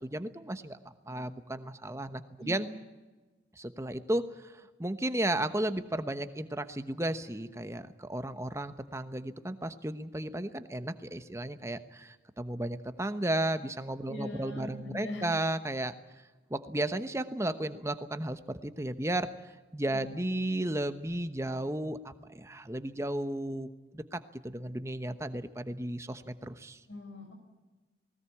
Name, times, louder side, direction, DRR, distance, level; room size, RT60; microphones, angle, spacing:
voice 1, 0.0-0.8 1.1-2.7 3.6-15.9 16.5-19.3 19.7-26.8, right 1 dB, 15° right, 10 dB, 1.0 m, -34 dB
voice 2, 14.1-15.3 19.9-20.2 26.9-27.3, left 1 dB, 90° left, 4 dB, 6.7 m, -41 dB
20.0 x 19.0 x 8.5 m, 1.2 s
head